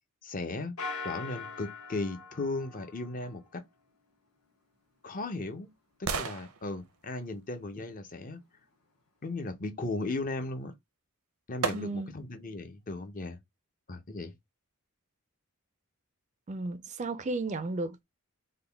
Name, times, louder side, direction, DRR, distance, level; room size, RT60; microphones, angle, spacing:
voice 1, 0.2-0.8 1.0-3.6 5.0-5.7 6.0-8.4 9.2-10.7 11.5-13.4 13.9-14.3, left 2 dB, 35° left, 0.7 m, -36 dB
sound 1, 0.8-3.5, left 4 dB, 70° left, 1.4 m, -41 dB
sound 2, 4.5-8.6 10.7-10.8 11.6-12.3 12.8-12.9, right 5 dB, 75° right, 0.7 m, -39 dB
voice 2, 11.7-12.1 16.5-18.0, right 2 dB, 30° right, 0.4 m, -34 dB
3.8 x 2.2 x 3.4 m
head